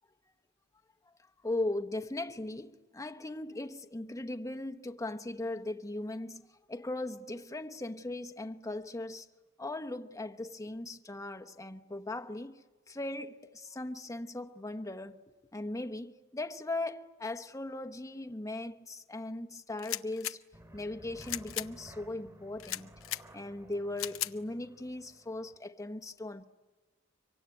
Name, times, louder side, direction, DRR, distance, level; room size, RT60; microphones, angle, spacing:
voice 1, 1.4-9.3 9.6-15.2 15.5-20.4 20.7-22.9 23.3-26.4, left 2 dB, 15° left, 1.0 m, -38 dB
sound 1, 19.8-20.4 21.2-21.7 22.6-23.2 24.0-24.3, left 13 dB, 75° left, 0.8 m, -36 dB
sound 2, 20.5-25.6, equal, 20° right, 2.2 m, -55 dB
25.0 x 24.5 x 9.4 m
head